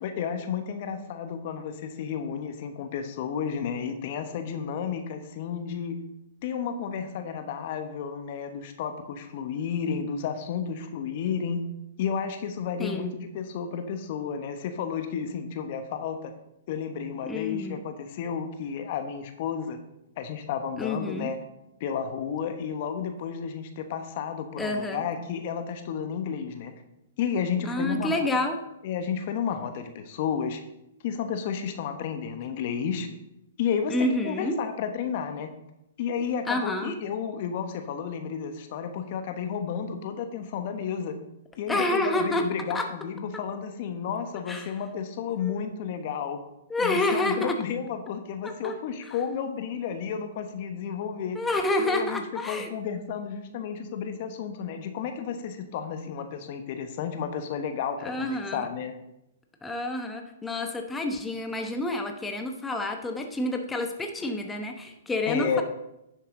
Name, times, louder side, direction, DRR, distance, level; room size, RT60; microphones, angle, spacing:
voice 1, 0.0-6.0 6.4-11.6 12.0-16.3 16.7-19.8 20.2-21.4 21.8-26.7 27.2-28.3 28.8-30.6 31.0-33.1 33.6-35.5 36.0-41.2 41.6-46.4 46.8-51.4 51.8-58.9 61.6-61.7 65.3-65.6, left 7 dB, 50° left, 7 dB, 1.2 m, -32 dB
voice 2, 12.8-13.1 17.3-17.8 20.8-21.3 24.6-25.0 27.7-28.6 33.9-34.6 36.5-36.9 41.7-42.4 42.7-42.9 44.5-44.7 45.4-45.5 46.7-47.5 48.4-48.7 51.3-52.7 58.0-58.7 59.6-65.6, left 1 dB, 10° left, 4 dB, 1.0 m, -28 dB
10.0 x 7.2 x 3.8 m, 0.86 s
hypercardioid pair, 120°, 0 cm